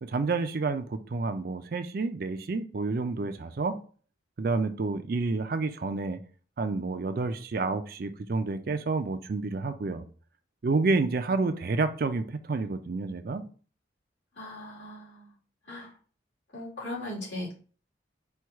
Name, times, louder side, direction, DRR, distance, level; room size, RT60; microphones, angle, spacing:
voice 1, 0.0-3.8 4.4-6.2 6.6-10.0 10.6-13.4, right 3 dB, 55° right, 0.4 m, -29 dB
voice 2, 14.3-15.4 15.6-15.9 16.5-17.6, left 1 dB, 90° left, 2.1 m, -38 dB
4.5 x 2.3 x 4.6 m
head